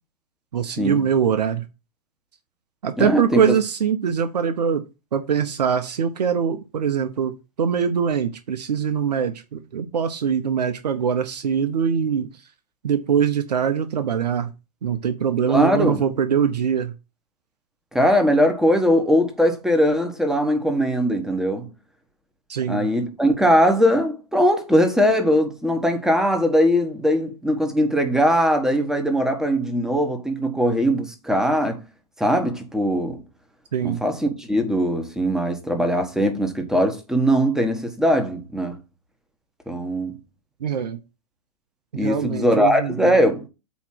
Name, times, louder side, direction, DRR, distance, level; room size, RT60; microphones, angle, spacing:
voice 1, 0.5-1.6 2.8-4.8 5.1-7.3 7.6-12.3 12.8-14.5 14.8-16.9 22.5-22.9 33.7-34.0 40.6-41.0 42.0-43.2, right 7 dB, 80° right, 0.9 m, -23 dB
voice 2, 3.0-3.6 15.5-16.0 17.9-21.7 22.7-31.8 32.2-33.2 33.8-38.8 39.7-40.2 41.9-43.5, equal, 5° right, 1.4 m, -20 dB
8.3 x 3.2 x 5.9 m
hypercardioid pair, 120°, 21 cm